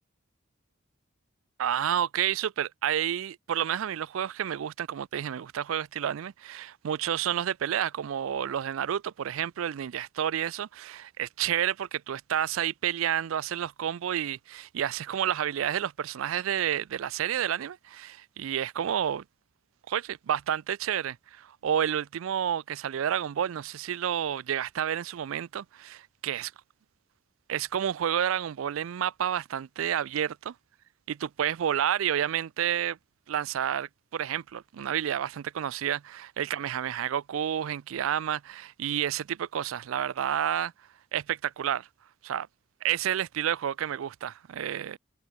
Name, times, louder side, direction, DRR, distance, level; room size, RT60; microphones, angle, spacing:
voice 1, 1.6-19.2 19.9-26.5 27.5-30.5 31.1-33.0 33.3-40.7 41.1-41.9 42.2-42.5 42.8-45.0, right 9 dB, 80° right, 0.4 m, -30 dB
head